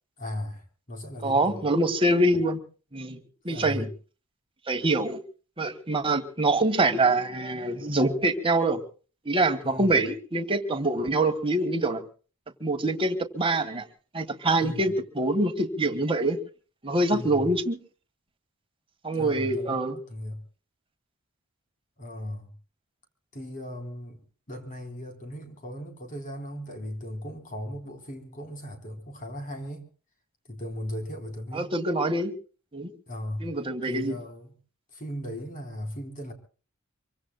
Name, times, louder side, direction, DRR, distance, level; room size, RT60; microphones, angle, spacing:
voice 1, 0.2-1.6 3.5-3.9 9.6-10.0 14.6-14.9 17.1-17.5 19.2-19.8 20.1-20.4 22.0-22.5 23.3-24.2 24.5-29.8 30.5-31.7 33.1-33.5 33.9-34.5 34.9-36.3, equal, 40° left, 3.8 m, -37 dB
voice 2, 1.2-2.6 2.9-3.2 3.4-3.9 4.7-5.2 5.6-8.8 9.2-12.0 12.6-13.8 14.1-16.4 16.8-17.8 19.0-20.0 31.5-32.3 32.7-32.9 33.4-34.1, right 2 dB, 25° right, 1.5 m, -25 dB
25.5 x 24.0 x 2.2 m
head